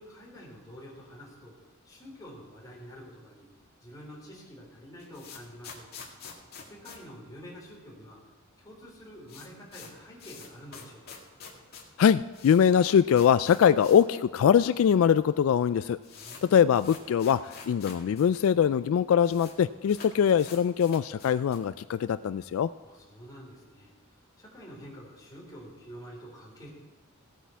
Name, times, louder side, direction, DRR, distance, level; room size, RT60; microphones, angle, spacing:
voice 1, 0.0-1.6 1.8-3.5 3.8-5.9 6.7-8.2 8.6-11.2 16.1-16.9 22.8-23.9 24.4-26.7, equal, 20° left, -4 dB, 3.8 m, -47 dB
sound 1, 4.7-8.0 8.2-8.3 8.6-8.7 9.0-14.1 14.4-14.5 15.2-15.3 15.6-18.3 18.5-18.6 18.8-19.6 19.9-21.8, left 5 dB, 45° left, 2.2 m, -47 dB
voice 2, 12.0-16.0 16.4-22.7, left 8 dB, 75° left, 14 dB, 0.3 m, -22 dB
17.0 x 8.5 x 4.6 m, 1.4 s
head